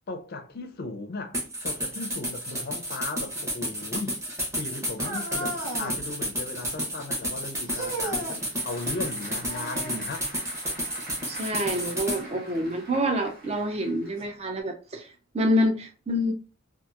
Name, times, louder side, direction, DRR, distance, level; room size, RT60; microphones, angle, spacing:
voice 1, 0.1-1.4 1.6-4.2 4.5-10.3, left 3 dB, 45° left, 0.4 m, -37 dB
sound 1, 1.3-12.2, equal, 15° right, 0.8 m, -31 dB
sound 2, 5.0-6.0 7.7-8.4 9.4-10.1 12.2-12.3 13.1-13.2 14.2-14.3, right 1 dB, 60° right, 1.1 m, -35 dB
Applause / Crowd, 7.8-14.6, right 1 dB, 45° right, 1.0 m, -46 dB
voice 2, 11.3-15.1 15.3-16.3, equal, 30° right, 0.4 m, -27 dB
2.8 x 2.4 x 2.3 m
head